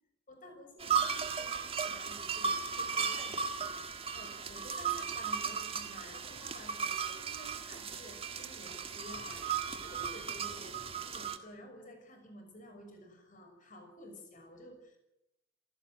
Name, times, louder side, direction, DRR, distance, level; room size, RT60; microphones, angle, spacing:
voice 1, 0.3-3.4 4.1-10.7 11.0-15.0, equal, 40° left, 5 dB, 6.3 m, -52 dB
sound 1, 0.8-11.4, right 6 dB, 30° right, 1.7 m, -36 dB
27.0 x 16.5 x 7.9 m, 0.87 s
head